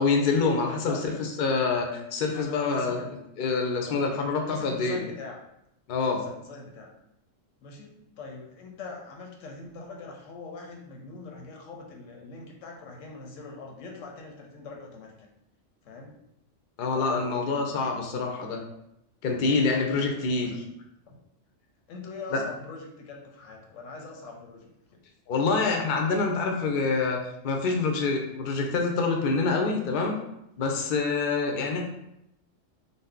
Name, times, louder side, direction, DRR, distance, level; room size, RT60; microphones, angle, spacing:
voice 1, 0.0-1.0 1.4-3.0 3.4-5.0 5.9-6.2 16.8-18.6 19.2-20.6 22.3-22.4 25.3-30.2 30.6-31.8, left 4 dB, 60° left, 2 dB, 0.6 m, -26 dB
voice 2, 0.7-1.3 2.3-3.1 3.7-5.4 6.1-6.9 7.6-15.3 15.8-16.1 16.9-18.1 19.9-20.6 21.1-21.2 21.9-25.0 31.5-31.7, left 3 dB, 85° left, 0 dB, 1.0 m, -43 dB
2.6 x 2.1 x 3.5 m, 0.82 s
omnidirectional pair, 1.3 m